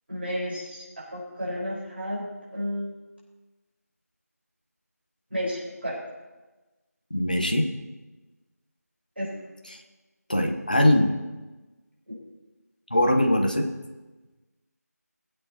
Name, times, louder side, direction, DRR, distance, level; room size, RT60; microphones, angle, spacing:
voice 1, 0.1-2.9 5.3-6.0 9.2-9.3 12.1-12.2, equal, 40° right, -5 dB, 4.8 m, -32 dB
voice 2, 7.1-7.7 10.3-11.1 12.9-13.7, left 1 dB, 30° left, 3 dB, 1.0 m, -21 dB
21.5 x 8.6 x 2.9 m, 1.2 s
figure-of-eight pair, 180°, 9 cm